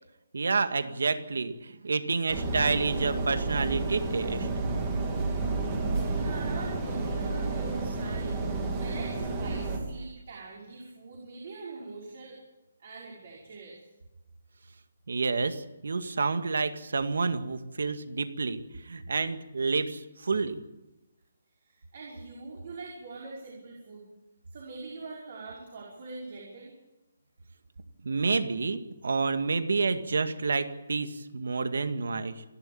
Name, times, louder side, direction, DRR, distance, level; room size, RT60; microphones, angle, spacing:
voice 1, 0.3-4.5 15.1-20.6 28.0-32.4, right 4 dB, 75° right, 9 dB, 2.0 m, -29 dB
sound 1, 2.3-9.8, right 3 dB, 20° right, 2.9 m, -31 dB
voice 2, 6.0-12.4 12.8-13.8 21.6-24.0 24.5-26.7, right 3 dB, 40° right, -3 dB, 5.5 m, -43 dB
28.0 x 12.0 x 8.8 m, 1.0 s
hypercardioid pair, 175°, 0 cm